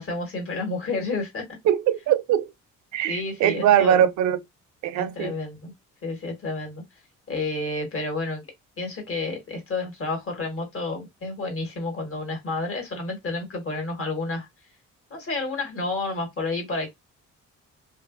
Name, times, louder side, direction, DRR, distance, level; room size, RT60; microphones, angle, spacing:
voice 1, 0.0-1.4 3.1-4.1 4.9-5.7 6.0-6.8 7.3-8.4 8.8-14.5 15.1-16.9, left 3 dB, 45° left, 1.4 m, -30 dB
voice 2, 1.7-2.5 2.9-4.4 4.8-5.3, right 10 dB, 70° right, 0.4 m, -21 dB
2.7 x 2.4 x 2.4 m
cardioid pair, 90°, 30 cm